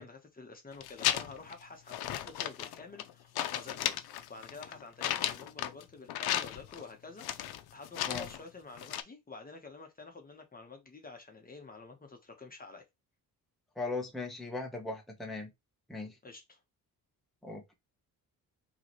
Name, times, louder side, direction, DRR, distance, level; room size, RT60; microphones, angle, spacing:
voice 1, 0.0-4.0 4.3-12.9 16.2-16.6, left 4 dB, 25° left, 1.2 m, -49 dB
sound 1, 0.7-1.5 1.9-3.1 3.4-5.8 6.1-6.8 7.2-8.4 8.8-9.0, left 12 dB, 85° left, 0.6 m, -34 dB
voice 2, 13.8-15.5 15.9-16.1 17.4-17.7, left 3 dB, ahead, 1.1 m, -38 dB
4.7 x 3.1 x 3.1 m
cardioid pair, 105°, 36 cm